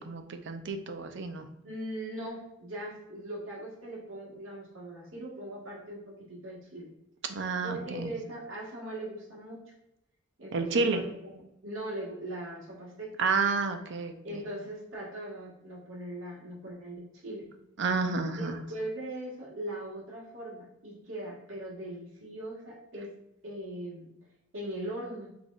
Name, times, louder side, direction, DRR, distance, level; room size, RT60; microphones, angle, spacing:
voice 1, 0.0-1.5 7.3-8.1 10.5-11.0 13.2-14.4 17.8-18.6, right 4 dB, 60° right, 7 dB, 0.5 m, -30 dB
voice 2, 1.6-6.9 7.6-9.6 10.4-13.1 14.2-17.5 18.3-23.2 23.4-24.1 24.5-25.3, right 1 dB, 80° right, -4 dB, 1.5 m, -40 dB
6.1 x 3.3 x 2.4 m, 0.84 s
head